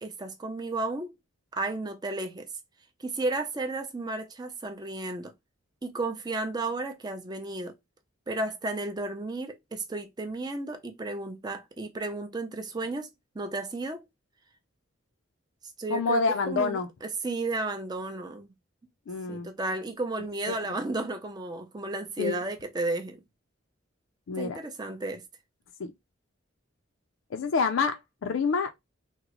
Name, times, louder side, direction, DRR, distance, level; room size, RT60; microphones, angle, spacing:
voice 1, 0.0-1.1 1.5-2.5 3.0-5.3 5.8-7.7 8.3-13.1 13.3-14.1 15.8-18.5 19.3-23.2 24.4-25.2, right 2 dB, 20° right, 0.5 m, -33 dB
voice 2, 15.9-16.9 19.1-19.5 20.5-20.6 22.2-22.4 24.3-24.6 25.8-25.9 27.3-28.7, left 4 dB, 75° left, 0.4 m, -27 dB
3.6 x 2.0 x 2.9 m
head